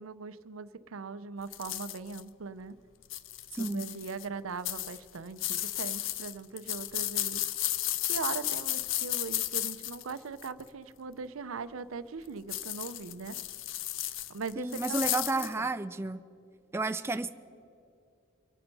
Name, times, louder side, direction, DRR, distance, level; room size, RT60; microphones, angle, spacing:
voice 1, 0.0-2.8 3.5-7.4 8.1-13.4 14.3-15.7, right 5 dB, 85° right, 14 dB, 0.6 m, -40 dB
sound 1, 1.5-2.2 3.0-4.3 4.6-10.6 12.5-15.5, left 14 dB, 65° left, 0.5 m, -34 dB
voice 2, 3.5-3.8 14.6-16.2 16.7-17.4, right 2 dB, 10° right, 9 dB, 0.3 m, -31 dB
24.5 x 8.9 x 5.4 m, 2.6 s
head